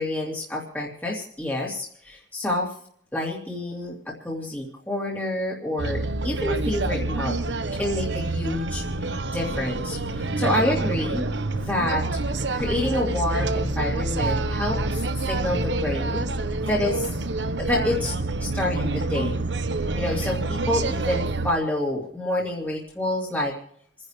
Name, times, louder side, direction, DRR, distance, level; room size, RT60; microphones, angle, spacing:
voice 1, 0.0-2.7 3.1-7.4 7.8-8.8 9.3-11.2 11.6-12.1 12.5-14.8 15.3-16.2 16.7-17.1 17.6-18.1 18.4-19.4 19.9-23.5, left 1 dB, 10° left, -3 dB, 2.7 m, -28 dB
sound 1, 5.8-21.5, right 2 dB, 80° right, 1.1 m, -27 dB
29.5 x 10.5 x 3.3 m, 0.67 s
head